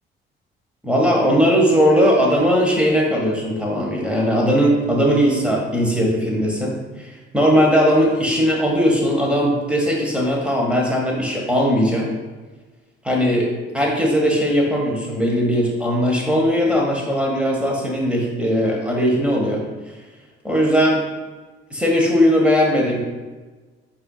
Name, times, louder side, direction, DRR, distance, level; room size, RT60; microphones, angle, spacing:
voice 1, 0.8-12.1 13.0-13.5 13.7-19.6 20.4-21.0 21.7-23.0, equal, 5° right, -1 dB, 1.2 m, -18 dB
7.9 x 2.8 x 2.3 m, 1.3 s
figure-of-eight pair, 45°, 30 cm